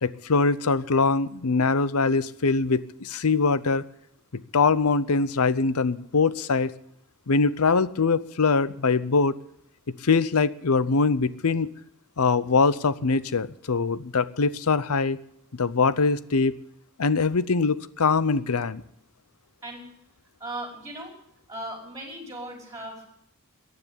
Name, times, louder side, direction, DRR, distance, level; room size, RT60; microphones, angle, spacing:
voice 1, 0.0-3.8 4.3-6.7 7.3-9.4 10.0-11.7 12.2-15.2 15.5-16.6 17.0-18.8, left 4 dB, 85° left, 17 dB, 0.8 m, -23 dB
voice 2, 20.4-21.1 21.5-23.1, right 1 dB, 15° right, 1 dB, 5.2 m, -37 dB
15.0 x 9.7 x 9.8 m, 0.73 s
head